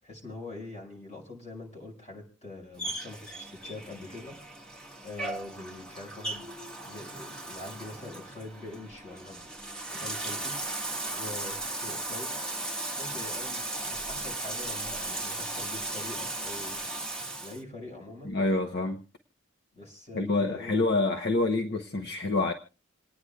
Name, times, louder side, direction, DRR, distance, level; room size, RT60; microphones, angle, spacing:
voice 1, 0.0-4.3 5.0-6.5 6.8-9.5 10.0-10.5 11.1-12.4 13.0-16.8 17.4-18.3 19.7-20.9, left 2 dB, 35° left, 5.6 m, -43 dB
Bathtub (filling or washing), 2.8-17.6, right 2 dB, 5° left, 1.5 m, -36 dB
voice 2, 18.2-19.0 20.1-22.5, left 2 dB, 55° left, 0.9 m, -27 dB
28.0 x 9.8 x 2.3 m
head